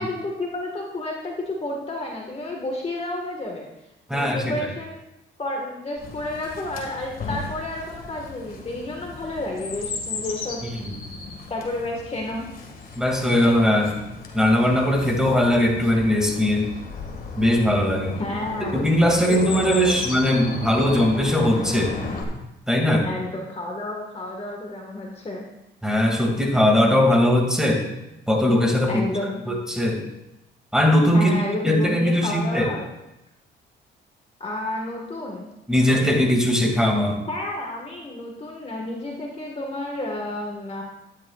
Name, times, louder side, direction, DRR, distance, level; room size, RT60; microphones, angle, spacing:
voice 1, 0.0-3.7 4.1-5.0 5.4-10.6 11.5-12.4 18.2-18.9 19.3-20.0 23.0-25.4 28.9-29.4 31.1-32.9 34.4-35.5 37.3-40.8, left 1 dB, 30° left, 0 dB, 1.6 m, -31 dB
voice 2, 4.1-4.5 10.8-10.9 13.0-13.9 14.3-16.7 17.4-18.2 18.7-22.0 22.7-23.1 25.8-27.8 28.3-29.0 29.5-30.0 30.7-31.3 31.6-32.7 35.7-37.2, left 1 dB, 5° right, 0 dB, 2.3 m, -20 dB
Chirp tweet, 6.0-22.2, left 3 dB, 45° left, 1.8 m, -35 dB
12.0 x 10.5 x 2.4 m, 0.91 s
cardioid pair, 90°, 20 cm